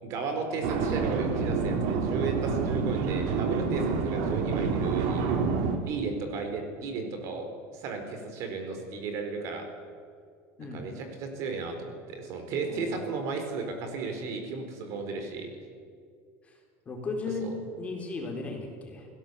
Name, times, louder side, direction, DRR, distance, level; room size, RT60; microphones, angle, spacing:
voice 1, 0.0-5.2 5.8-7.5 7.7-9.7 10.6-15.5 17.4-17.5, right 4 dB, 45° right, 5 dB, 4.4 m, -34 dB
sound 1, 0.6-5.8, right 5 dB, 60° right, 3.2 m, -28 dB
voice 2, 10.6-11.1 12.7-13.0 16.5-16.6 16.9-19.1, left 3 dB, 20° left, 1 dB, 4.0 m, -36 dB
30.0 x 17.0 x 8.3 m, 2.2 s
cardioid pair, 170°, 7 cm